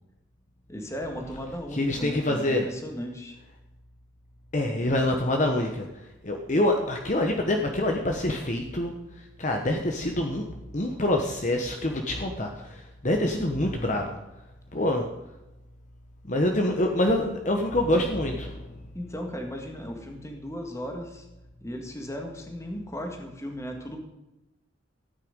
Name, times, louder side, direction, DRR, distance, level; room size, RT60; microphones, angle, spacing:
voice 1, 0.7-3.4 16.7-16.8 18.9-21.2 21.6-24.0, equal, 15° left, 3 dB, 1.8 m, -36 dB
voice 2, 1.7-2.7 4.5-5.9 6.2-8.9 9.4-10.5 10.7-14.2 14.7-15.1 16.3-18.7, left 1 dB, 40° left, 3 dB, 1.1 m, -26 dB
14.0 x 9.3 x 5.2 m, 0.96 s
head